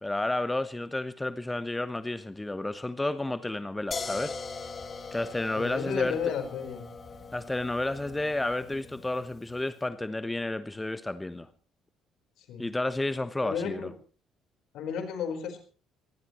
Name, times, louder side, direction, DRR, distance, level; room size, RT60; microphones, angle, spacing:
voice 1, 0.0-4.4 5.1-6.2 7.3-11.5 12.6-13.9, left 2 dB, 15° left, 11 dB, 1.2 m, -31 dB
sound 1, 3.9-9.7, left 4 dB, 40° left, 2.4 m, -41 dB
voice 2, 5.6-6.8 12.4-12.7 13.4-13.9 14.7-15.6, left 7 dB, 65° left, 6 dB, 4.5 m, -33 dB
24.5 x 19.0 x 3.1 m, 0.39 s
hypercardioid pair, 55°, 0 cm